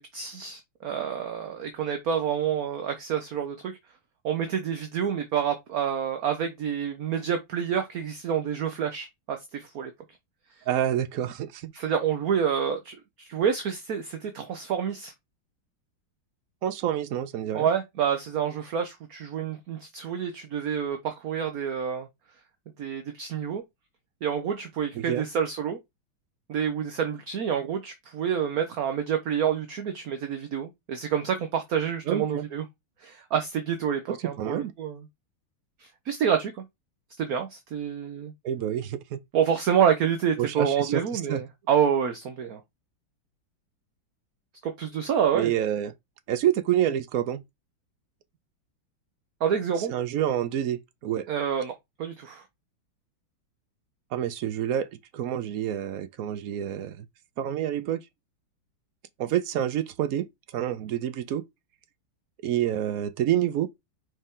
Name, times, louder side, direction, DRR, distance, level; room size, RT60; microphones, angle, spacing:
voice 1, 0.1-3.7 4.2-9.9 11.7-15.1 17.5-22.1 22.8-23.6 24.2-25.8 26.5-32.6 33.0-35.0 35.8-36.6 37.2-38.3 39.3-42.6 44.6-45.5 49.4-49.9 51.3-52.4, right 8 dB, 55° right, 1.1 m, -28 dB
voice 2, 10.7-11.7 16.6-17.7 25.0-25.2 32.1-32.4 34.4-34.7 38.4-39.2 40.4-41.4 45.3-45.9 46.3-47.4 49.8-51.3 54.1-54.9 55.1-57.1 57.4-58.0 59.2-60.3 60.5-61.4 62.4-63.7, right 11 dB, 80° right, 0.8 m, -28 dB
5.5 x 4.7 x 3.7 m
omnidirectional pair, 2.3 m